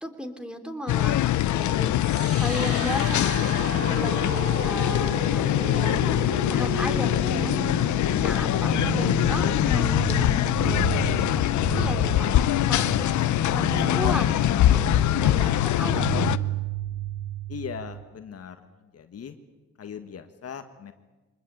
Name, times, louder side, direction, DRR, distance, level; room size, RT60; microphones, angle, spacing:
voice 1, 0.0-1.9 2.4-6.1 6.5-7.5 8.2-16.0, equal, 5° right, 7 dB, 2.9 m, -36 dB
sound 1, 0.9-16.4, left 13 dB, 70° left, 0.8 m, -23 dB
sound 2, 2.0-18.0, right 6 dB, 50° right, 3.6 m, -33 dB
voice 2, 17.5-19.4 19.8-20.9, left 7 dB, 55° left, 7 dB, 1.7 m, -39 dB
24.0 x 20.5 x 8.8 m, 1.2 s
cardioid pair, 90°, 30 cm